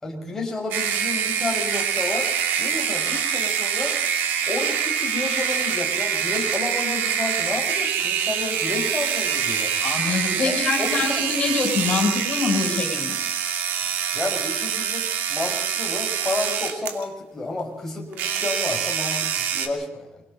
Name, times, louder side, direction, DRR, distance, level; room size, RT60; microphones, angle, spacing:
voice 1, 0.0-2.3 2.6-3.9 4.4-9.7 10.4-11.2 14.1-20.2, left 2 dB, 10° left, -1 dB, 5.6 m, -31 dB
sound 1, 0.7-17.0 18.1-19.7, right 8 dB, 90° right, 2.7 m, -25 dB
voice 2, 9.8-13.1, left 4 dB, 35° left, 1 dB, 7.8 m, -24 dB
29.0 x 23.0 x 4.1 m, 0.80 s
cardioid pair, 165°, 3 cm